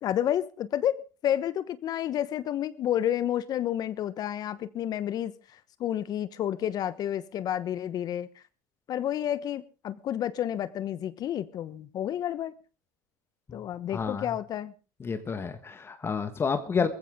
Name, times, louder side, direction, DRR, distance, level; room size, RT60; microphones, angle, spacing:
voice 1, 0.0-5.3 5.8-8.3 8.9-12.5 13.5-14.7 16.8-16.9, left 11 dB, 45° left, 1.0 m, -30 dB
voice 2, 13.9-14.3 15.0-16.9, left 5 dB, 25° left, 1.5 m, -30 dB
20.5 x 15.0 x 3.7 m
hypercardioid pair, 85°, 9 cm